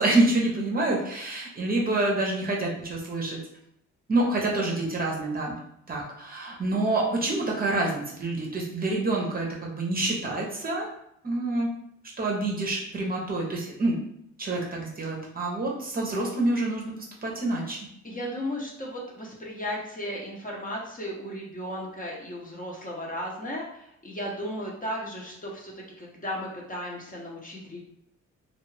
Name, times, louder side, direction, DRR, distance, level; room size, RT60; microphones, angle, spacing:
voice 1, 0.0-3.4 4.1-5.6 5.9-10.9 11.2-11.7 12.2-14.0 14.4-16.9 17.2-17.8, right 2 dB, 30° right, -2 dB, 0.7 m, -27 dB
voice 2, 18.0-27.8, equal, 25° left, -3 dB, 0.8 m, -35 dB
2.3 x 2.3 x 3.1 m, 0.75 s
cardioid pair, 90°, 30 cm